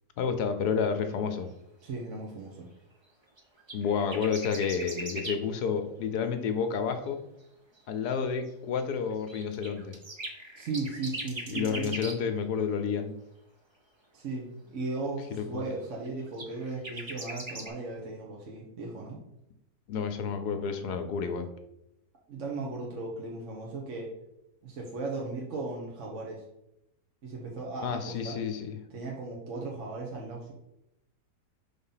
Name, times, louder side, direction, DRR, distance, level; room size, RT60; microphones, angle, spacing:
voice 1, 0.2-1.5 3.7-7.2 7.9-9.9 11.5-13.1 15.3-15.7 19.9-21.5 27.8-28.8, left 6 dB, 75° left, 7 dB, 1.2 m, -30 dB
voice 2, 1.8-2.7 10.5-11.9 14.1-19.2 22.3-24.1 24.6-26.4 27.2-28.4 28.9-30.5, right 3 dB, 50° right, -2 dB, 1.2 m, -36 dB
sound 1, 3.4-5.4 7.1-7.2 7.8-7.9 8.1-8.2 8.5-8.6 9.1-12.2 16.1-17.7, right 1 dB, 30° right, 0.5 m, -40 dB
5.2 x 4.0 x 5.6 m, 0.84 s
omnidirectional pair, 1.8 m